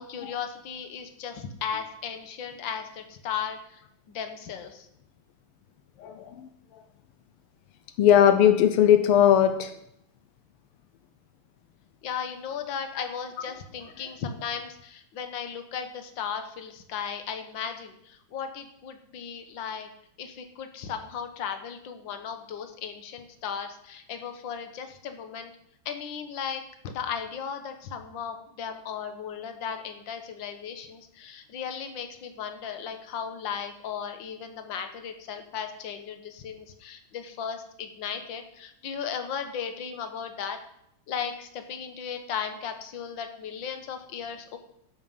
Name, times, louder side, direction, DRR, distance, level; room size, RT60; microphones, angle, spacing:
voice 1, 0.0-3.8 4.1-4.9 12.0-19.9 20.2-25.5 25.8-40.6 41.1-44.6, left 7 dB, 65° left, 7 dB, 1.7 m, -36 dB
voice 2, 6.0-6.5 8.0-9.7, left 10 dB, 85° left, 10 dB, 1.6 m, -19 dB
13.0 x 7.2 x 5.5 m, 0.76 s
omnidirectional pair, 2.4 m